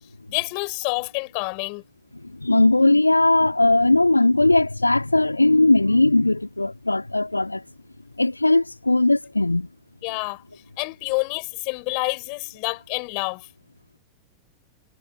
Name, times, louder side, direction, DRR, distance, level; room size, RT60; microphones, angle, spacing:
voice 1, 0.3-1.8 10.0-10.4 10.8-13.5, left 40 dB or more, 45° left, 5.9 m, -28 dB
voice 2, 2.1-7.6 8.2-9.7, left 2 dB, 85° left, 2.9 m, -19 dB
figure-of-eight pair, 90°, 0 cm